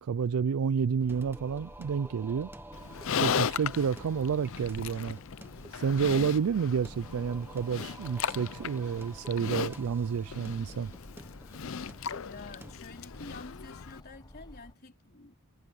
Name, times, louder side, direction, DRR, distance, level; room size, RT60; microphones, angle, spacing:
voice 1, 0.0-2.5 3.2-5.2 5.7-10.9, right 6 dB, 80° right, 0.4 m, -30 dB
sound 1, 1.0-14.7, left 1 dB, 20° left, 1.1 m, -52 dB
Singing, 1.1-12.7, right 1 dB, 10° right, 1.2 m, -51 dB
Livestock farm animals working animals, 2.7-14.0, left 7 dB, 65° left, 0.6 m, -37 dB
voice 2, 12.1-15.3, left 3 dB, 45° left, 4.1 m, -49 dB
head